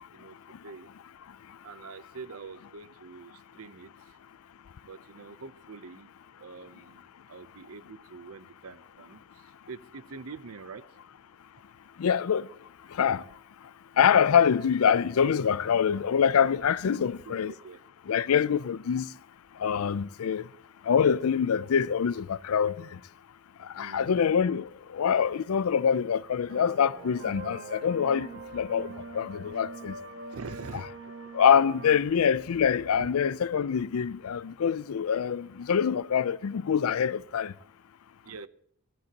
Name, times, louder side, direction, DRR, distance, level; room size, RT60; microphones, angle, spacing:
voice 1, 1.6-4.2 4.8-6.1 6.4-10.8 16.9-17.8 23.7-24.2 30.3-31.1 32.9-33.1 38.2-38.5, right 4 dB, 80° right, 0.6 m, -45 dB
voice 2, 12.0-12.5 12.9-13.2 14.0-17.5 18.1-19.1 19.6-20.5 20.8-23.0 23.6-29.9 31.3-37.5, left 7 dB, 80° left, 0.4 m, -25 dB
sound 1, 26.5-32.0, right 2 dB, 60° right, 1.7 m, -43 dB
17.5 x 15.0 x 2.9 m
head